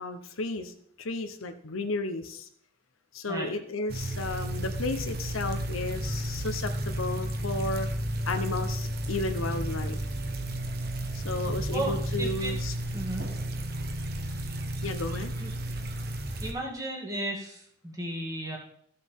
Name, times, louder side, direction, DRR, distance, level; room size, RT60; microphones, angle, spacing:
voice 1, 0.0-2.5 3.1-7.9 8.3-10.0 11.1-12.7 14.8-15.3, left 2 dB, 90° left, 7 dB, 1.0 m, -33 dB
sound 1, 3.9-16.5, right 1 dB, 50° right, 1.0 m, -32 dB
voice 2, 11.7-12.5 12.9-13.2 15.4-15.5 16.4-18.6, right 1 dB, 15° right, -2 dB, 2.1 m, -34 dB
14.5 x 6.7 x 3.7 m, 0.67 s
head